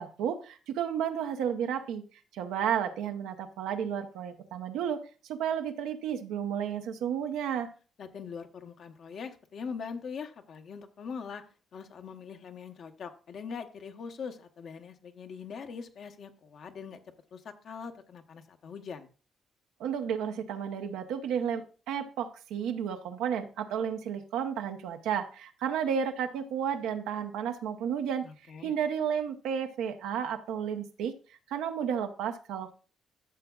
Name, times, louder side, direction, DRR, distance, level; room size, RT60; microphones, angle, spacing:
voice 1, 0.0-2.0 2.3-5.0 5.3-7.7 19.8-28.2 28.6-32.7, right 8 dB, 85° right, 6 dB, 0.9 m, -32 dB
voice 2, 8.0-17.0 17.3-19.1 28.2-28.7, left 6 dB, 65° left, 6 dB, 1.1 m, -42 dB
13.0 x 6.8 x 2.4 m, 0.37 s
supercardioid pair, 65°, 0 cm